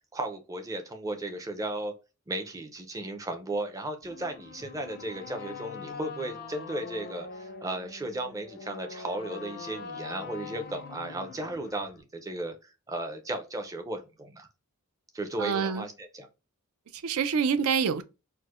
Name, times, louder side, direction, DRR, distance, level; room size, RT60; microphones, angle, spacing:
voice 1, 0.1-1.9 2.3-14.5 15.1-15.9 16.2-16.3, right 1 dB, 15° right, 0.5 m, -35 dB
sound 1, 4.0-12.0, left 4 dB, 45° left, 0.4 m, -43 dB
voice 2, 15.4-15.9 16.9-18.0, right 6 dB, 75° right, 0.4 m, -26 dB
4.5 x 2.0 x 2.4 m
head